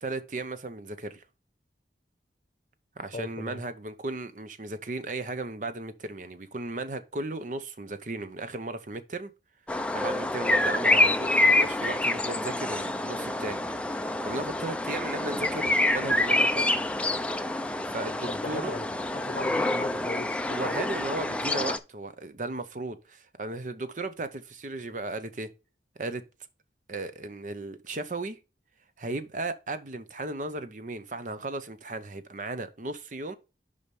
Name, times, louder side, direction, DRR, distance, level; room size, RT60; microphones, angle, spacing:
voice 1, 0.0-1.2 3.0-9.3 9.9-16.8 17.9-18.8 20.4-25.5 26.0-26.2 26.9-28.4 29.0-33.4, right 2 dB, 45° right, 0.7 m, -36 dB
voice 2, 3.1-3.6 18.3-20.9, left 2 dB, 40° left, 0.8 m, -38 dB
sound 1, 9.7-21.8, left 2 dB, 5° left, 0.4 m, -27 dB
5.5 x 4.9 x 5.2 m
head